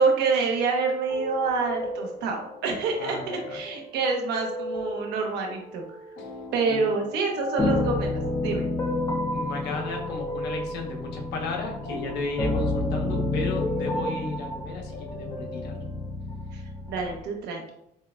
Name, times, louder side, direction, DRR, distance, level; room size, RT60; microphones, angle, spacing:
voice 1, 0.0-5.8 6.5-8.7 16.5-16.6 16.9-17.7, right 4 dB, 85° right, 2 dB, 1.0 m, -27 dB
sound 1, 1.1-16.1, equal, 55° left, 1.1 m, -38 dB
voice 2, 3.0-3.5 6.2-6.3 6.7-6.9 9.0-15.7, left 3 dB, 80° left, 1 dB, 0.9 m, -34 dB
sound 2, 7.6-17.2, left 2 dB, 20° left, 0.7 m, -30 dB
6.4 x 2.3 x 2.2 m, 0.77 s
cardioid pair, 110°, 17 cm